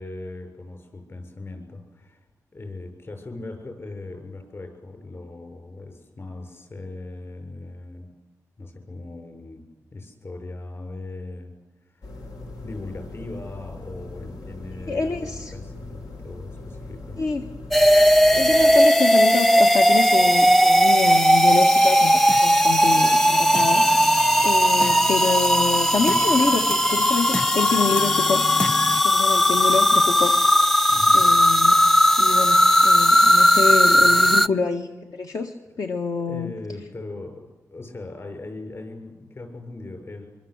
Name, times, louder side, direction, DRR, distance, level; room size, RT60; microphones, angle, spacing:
voice 1, 0.0-2.3 2.5-8.2 8.6-12.2 12.5-17.2 29.7-29.8 30.9-31.3 33.6-34.4 36.2-40.3, left 2 dB, 45° left, 5 dB, 7.2 m, -39 dB
sound 1, 12.0-18.7, left 2 dB, 90° left, 5.2 m, -39 dB
voice 2, 14.9-15.5 17.2-17.4 18.3-23.8 24.4-28.4 29.0-30.3 31.1-31.8 32.2-36.5, left 4 dB, 70° left, 3 dB, 1.8 m, -26 dB
sound 2, 17.7-34.5, equal, 5° left, 0.8 m, -17 dB
sound 3, 21.7-29.0, left 1 dB, 20° left, 1.3 m, -33 dB
24.5 x 24.5 x 8.2 m, 1.1 s
cardioid pair, 80°, 6 cm